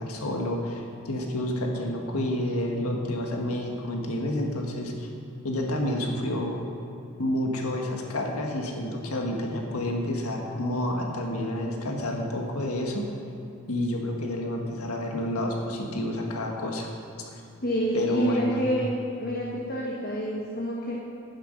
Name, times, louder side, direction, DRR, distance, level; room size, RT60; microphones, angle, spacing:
voice 1, 0.0-5.1 5.4-6.6 7.2-13.0 13.7-16.9 17.3-17.4 17.9-18.7, left 1 dB, 85° left, 1 dB, 1.7 m, -29 dB
voice 2, 17.6-18.9 19.2-20.9, equal, 45° left, -4 dB, 1.5 m, -28 dB
11.5 x 9.6 x 5.4 m, 2.7 s
head